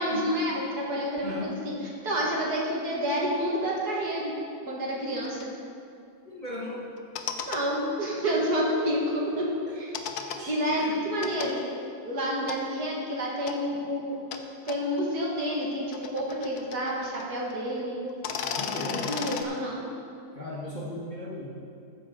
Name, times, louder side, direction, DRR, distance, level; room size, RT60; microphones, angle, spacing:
voice 1, 0.0-1.6 2.0-4.3 4.7-5.4 7.5-11.6 12.0-14.1 14.7-18.0 18.7-19.8, equal, 55° right, -3 dB, 2.3 m, -29 dB
voice 2, 1.2-1.6 6.2-6.8 9.7-9.8 10.3-11.0 18.5-19.1 20.3-21.5, left 1 dB, 25° left, -6 dB, 1.3 m, -37 dB
sound 1, 5.2-5.4 7.0-7.6 9.9-10.4 11.2-11.5 12.5-12.6 13.5-13.6 14.3-14.4 14.7-14.8 15.7-17.3 17.5-17.6 18.1-19.4, left 7 dB, 65° left, 1.1 m, -34 dB
13.0 x 9.7 x 3.8 m, 2.5 s
omnidirectional pair, 2.0 m